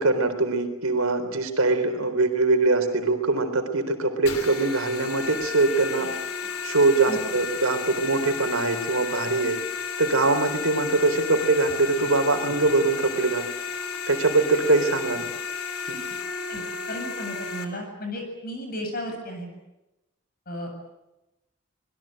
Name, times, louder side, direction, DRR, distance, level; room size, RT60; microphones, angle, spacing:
voice 1, 0.0-6.1 6.6-9.6 10.0-13.5 14.1-15.3 15.9-16.0, right 3 dB, 75° right, 7 dB, 3.9 m, -22 dB
sound 1, 4.3-17.6, left 5 dB, 80° left, 3.3 m, -33 dB
voice 2, 16.5-19.5 20.5-20.7, equal, 45° left, 4 dB, 7.9 m, -34 dB
26.0 x 21.5 x 9.0 m, 0.96 s
head